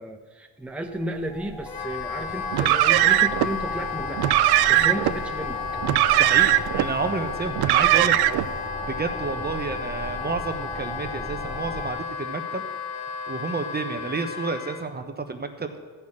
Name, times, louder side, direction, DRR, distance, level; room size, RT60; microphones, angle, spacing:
voice 1, 0.0-5.6, right 1 dB, 5° right, 2 dB, 1.0 m, -33 dB
sound 1, 0.8-11.9, equal, 15° left, 3.8 m, -37 dB
Wind instrument woodwind instrument, 1.6-14.8, left 7 dB, 70° left, 1.2 m, -34 dB
Car, 2.5-3.5 4.2-5.1 5.8-6.9 7.6-8.5, right 15 dB, 85° right, 0.6 m, -19 dB
voice 2, 6.2-8.1 8.9-12.6 13.3-15.7, right 4 dB, 25° right, 6 dB, 1.1 m, -30 dB
14.0 x 6.4 x 8.8 m, 1.4 s
cardioid pair, 100°, 38 cm